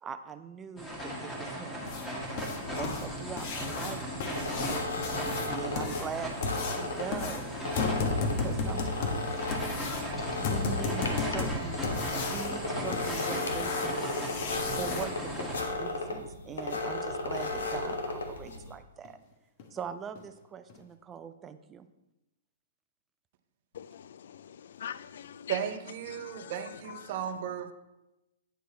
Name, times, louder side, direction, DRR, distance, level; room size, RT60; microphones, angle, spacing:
voice 1, 0.0-1.9 2.7-6.3 6.8-7.5 8.3-9.4 10.4-11.8 12.3-14.1 14.7-19.2 19.7-21.9, right 7 dB, 20° right, 10 dB, 0.5 m, -42 dB
sound 1, 0.8-15.6, equal, 10° left, 1.6 m, -37 dB
sound 2, 1.8-15.0 17.4-17.5 17.9-18.0 18.5-18.6 19.0-19.1 19.6-19.8 20.1-20.2 20.7-20.8, left 4 dB, 45° left, 1.1 m, -35 dB
sound 3, 4.3-18.7, left 2 dB, 85° left, 1.2 m, -35 dB
voice 2, 23.7-25.6 26.0-27.7, left 9 dB, 70° left, 16 dB, 0.3 m, -44 dB
voice 3, 25.5-27.7, right 9 dB, 50° right, 8 dB, 0.8 m, -35 dB
9.1 x 4.7 x 4.1 m, 0.95 s
hypercardioid pair, 135°, 0 cm